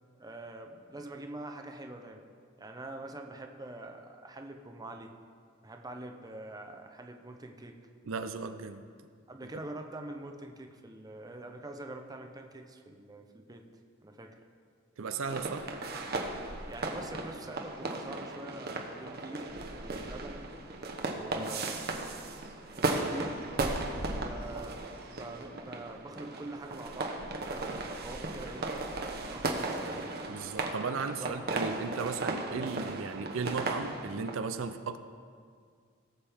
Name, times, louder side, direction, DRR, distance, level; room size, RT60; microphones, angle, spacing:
voice 1, 0.2-2.2 2.6-5.1 5.6-7.8 9.3-13.7 14.0-14.4 16.6-20.4 21.1-21.9 22.7-23.4 24.1-24.8 25.1-28.7 29.2-30.0 31.2-31.4, right 2 dB, 20° right, 4 dB, 0.7 m, -44 dB
voice 2, 8.1-8.9 15.0-15.7 21.4-21.5 30.3-35.0, right 5 dB, 75° right, 9 dB, 0.5 m, -36 dB
sound 1, 15.3-34.4, right 2 dB, 50° right, 1.0 m, -36 dB
17.5 x 7.4 x 3.5 m, 2.1 s
head